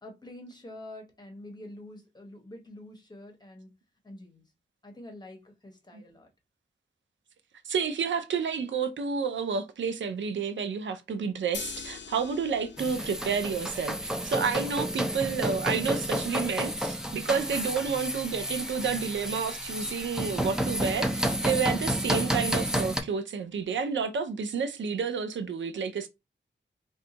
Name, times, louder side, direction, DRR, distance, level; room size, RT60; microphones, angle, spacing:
voice 1, 0.0-3.8 4.0-4.4 4.8-6.3, left 1 dB, 20° left, 0.9 m, -46 dB
voice 2, 7.7-26.1, right 6 dB, 85° right, 0.5 m, -30 dB
sound 1, 11.5-17.6, left 7 dB, 70° left, 0.5 m, -46 dB
sound 2, 12.8-23.0, equal, 5° right, 0.4 m, -31 dB
2.6 x 2.3 x 3.8 m
wide cardioid pair, 95°, 19 cm